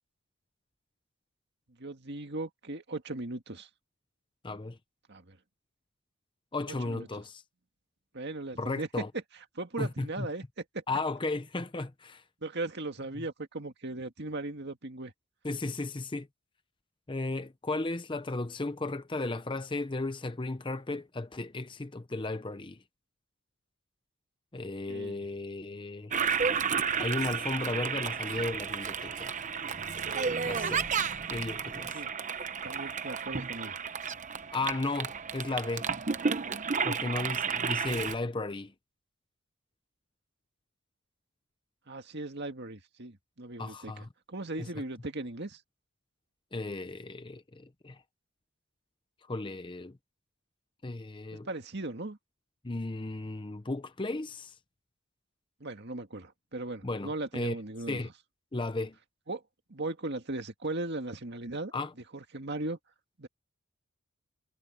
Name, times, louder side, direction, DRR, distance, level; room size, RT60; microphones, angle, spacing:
voice 1, 1.8-3.7 5.1-5.4 6.7-7.1 8.1-9.0 9.6-10.8 12.4-15.1 24.9-25.2 31.9-32.1 32.6-33.8 41.9-45.6 51.3-52.2 55.6-58.1 59.3-59.4 59.7-61.7 62.1-62.8 63.2-63.3, right 2 dB, 55° right, 2.0 m, -38 dB
voice 2, 4.4-4.8 6.5-7.4 8.6-9.1 9.8-10.3 10.9-12.2 15.4-16.3 17.1-22.8 24.5-26.1 27.0-29.4 30.4-30.8 31.3-32.0 34.5-35.9 36.8-38.7 43.6-44.1 44.6-44.7 46.5-48.0 49.3-50.0 50.8-51.5 52.6-54.5 56.8-57.6 57.9-58.1 58.5-59.0 61.7-61.9, left 2 dB, 25° left, 0.7 m, -35 dB
Toilet flush, 26.1-38.1, right 6 dB, 35° right, 0.9 m, -32 dB
head